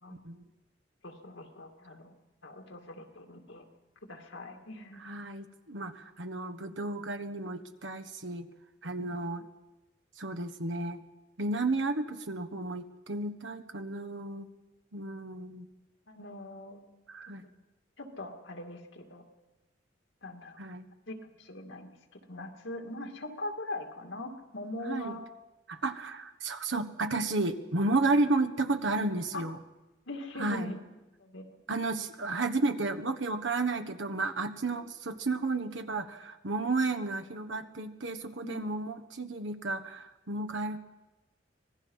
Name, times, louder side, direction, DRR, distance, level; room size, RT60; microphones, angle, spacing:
voice 1, 1.0-2.1 2.4-3.6 4.1-5.0 9.0-9.1 16.1-16.9 17.4-17.5 18.0-19.2 20.2-20.6 21.1-25.2 29.3-29.4 30.1-30.8 31.2-31.5 38.4-38.6, left 1 dB, 90° left, 4 dB, 2.4 m, -41 dB
voice 2, 5.0-8.5 8.8-9.5 10.2-11.0 11.4-14.5 14.9-15.7 17.1-17.4 20.6-20.9 24.8-25.2 25.7-29.6 30.4-30.7 31.7-40.8, right 3 dB, 80° right, 9 dB, 1.3 m, -32 dB
25.5 x 19.0 x 5.6 m, 1.1 s
head